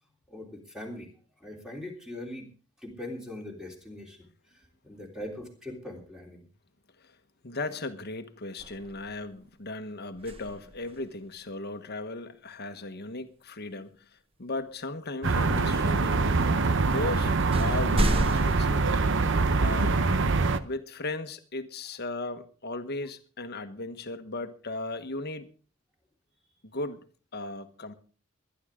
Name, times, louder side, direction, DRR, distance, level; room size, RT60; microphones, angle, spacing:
voice 1, 0.3-1.1 1.4-2.5 2.8-4.2 4.5-6.4, left 1 dB, 5° right, 3.4 m, -41 dB
voice 2, 7.4-16.5 16.8-20.1 20.6-25.5 26.6-27.0 27.3-27.9, left 2 dB, 50° left, 1.3 m, -37 dB
sound 1, 8.6-9.4 10.1-11.1 14.6-14.7 16.8-16.9 17.5-18.6, right 1 dB, 25° right, 1.1 m, -31 dB
sound 2, 15.2-20.6, right 3 dB, 60° right, 0.9 m, -24 dB
22.0 x 11.0 x 3.7 m
head